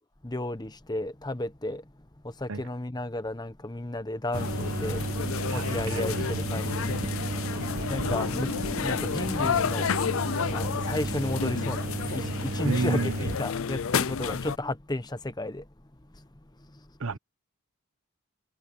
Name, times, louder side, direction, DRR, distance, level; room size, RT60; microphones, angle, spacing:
voice 1, 0.2-1.8 2.2-5.1 5.5-7.0 7.9-8.5 8.8-9.9 10.5-11.8 12.1-15.7 16.1-16.2 16.7-16.8, left 1 dB, 20° left, 1.0 m, -33 dB
sound 1, 4.3-14.6, left 6 dB, 65° left, 0.5 m, -31 dB
sound 2, 4.4-13.4, right 2 dB, 40° right, 1.1 m, -33 dB
voice 2, 5.5-6.3 12.6-13.1 17.0-17.2, right 4 dB, 65° right, 0.9 m, -31 dB
head